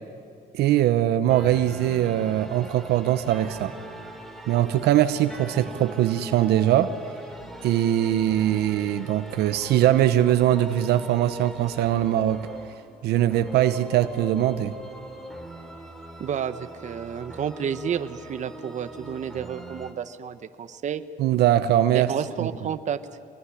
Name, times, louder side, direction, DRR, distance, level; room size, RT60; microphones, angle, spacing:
voice 1, 0.5-3.7 4.5-6.9 7.6-12.5 13.0-14.8 21.2-22.1 22.4-22.5, right 12 dB, 75° right, 10 dB, 0.9 m, -21 dB
sound 1, 1.3-19.9, right 1 dB, ahead, 2.7 m, -42 dB
voice 2, 16.2-21.0 21.9-23.0, right 8 dB, 45° right, 10 dB, 1.1 m, -31 dB
24.5 x 21.0 x 10.0 m, 2.4 s
cardioid pair, 110°, 17 cm